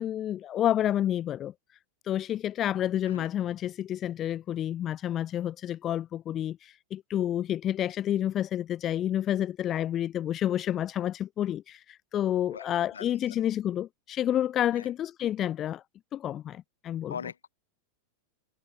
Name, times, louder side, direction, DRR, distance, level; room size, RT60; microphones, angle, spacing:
voice 1, 0.0-1.5 2.0-15.8 16.1-17.1, left 11 dB, 30° left, 0.5 m, -29 dB
voice 2, 12.9-13.5 14.7-14.9 17.1-17.5, left 7 dB, 70° left, 5.6 m, -41 dB
figure-of-eight pair, 90°, 0 cm